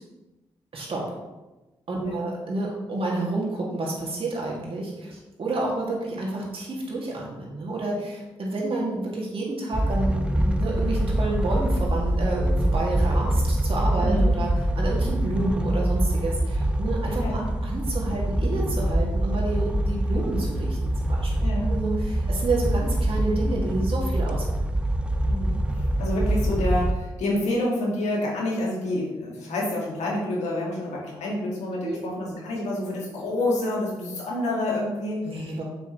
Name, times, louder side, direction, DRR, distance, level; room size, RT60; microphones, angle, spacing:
voice 1, 0.7-1.0 1.9-14.5 14.8-21.3 21.6-24.6 31.8-32.0 35.2-35.6, right 2 dB, 50° right, -3 dB, 2.4 m, -29 dB
Masonry heater at cabin, 9.7-26.9, right 1 dB, 10° right, 0.7 m, -24 dB
voice 2, 21.4-21.7 25.3-35.6, left 1 dB, 75° left, -3 dB, 2.1 m, -28 dB
6.9 x 6.1 x 3.2 m, 1.1 s
supercardioid pair, 45°, 12 cm